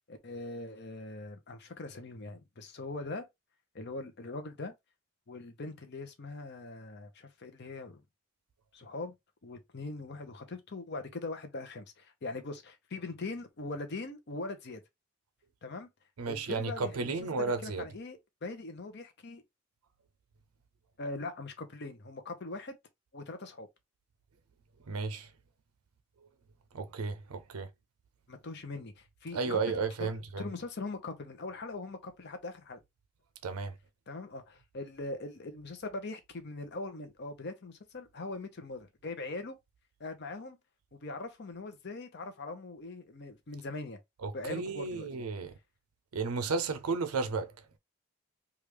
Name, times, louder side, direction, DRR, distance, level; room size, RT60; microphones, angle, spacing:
voice 1, 0.1-3.3 3.7-4.7 5.3-8.0 8.7-9.1 9.4-14.8 15.6-15.9 16.2-19.4 21.0-22.8 23.1-23.7 28.3-29.6 30.0-30.1 30.4-32.8 34.1-39.6 40.0-40.6 40.9-44.0 44.3-45.1, left 3 dB, 50° left, 0.7 m, -41 dB
voice 2, 16.2-17.8 24.9-25.3 26.2-26.3 26.7-27.7 29.3-30.5 33.4-33.8 44.2-45.5 46.1-47.5, right 4 dB, 90° right, 0.5 m, -33 dB
3.3 x 2.4 x 3.1 m
head